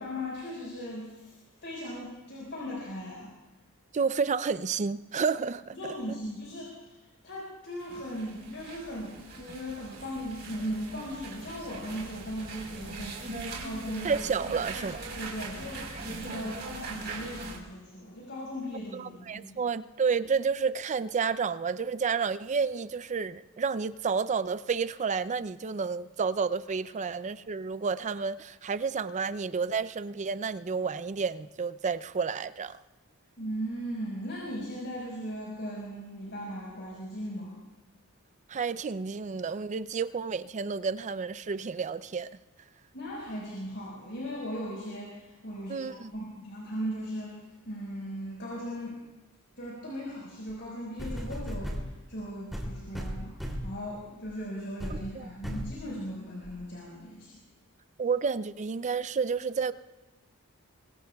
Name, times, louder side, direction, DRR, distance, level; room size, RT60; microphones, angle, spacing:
voice 1, 0.0-1.3 1.6-3.3 5.7-14.1 14.4-14.5 15.1-19.6 33.4-37.6 42.9-49.0 49.6-57.4, equal, 55° left, 4.8 m, -38 dB
voice 2, 3.9-5.7 14.0-15.1 18.9-32.8 38.5-42.3 45.7-46.1 55.1-55.3 58.0-59.7, right 5 dB, 35° right, 0.4 m, -30 dB
sound 1, 7.8-17.6, right 3 dB, 50° right, 4.1 m, -41 dB
sound 2, 50.5-50.6 51.0-51.9 52.5-53.8 54.3-54.4 54.8-55.0 55.4-55.7 56.4-56.5, equal, ahead, 2.9 m, -35 dB
25.0 x 23.5 x 2.3 m
head